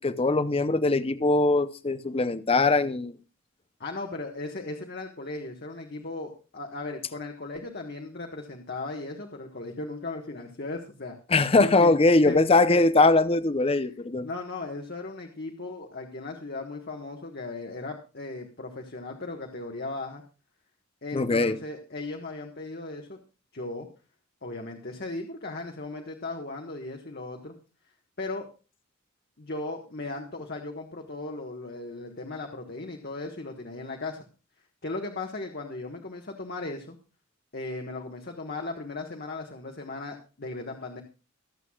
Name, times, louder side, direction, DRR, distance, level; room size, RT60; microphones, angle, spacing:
voice 1, 0.0-3.2 11.3-14.3 21.1-21.6, left 3 dB, 25° left, 0.7 m, -21 dB
voice 2, 3.8-11.2 11.6-11.9 12.3-12.4 12.7-12.8 13.8-13.9 14.2-20.2 21.0-23.2 23.5-23.9 24.4-27.5 28.2-28.5 29.4-34.2 34.8-37.0 37.5-41.0, left 2 dB, 50° left, 1.4 m, -37 dB
24.0 x 8.1 x 2.4 m
head